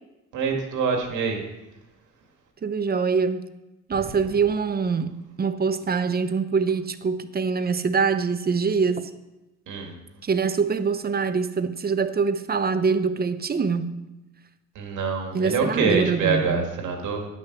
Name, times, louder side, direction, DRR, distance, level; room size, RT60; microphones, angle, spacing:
voice 1, 0.3-1.4 9.7-9.9 14.8-17.3, right 5 dB, 85° right, 2.0 m, -25 dB
voice 2, 2.6-3.4 3.9-9.1 10.2-13.9 15.3-16.7, right 5 dB, 30° right, 0.7 m, -24 dB
10.5 x 6.7 x 6.0 m
cardioid pair, 90°, 30 cm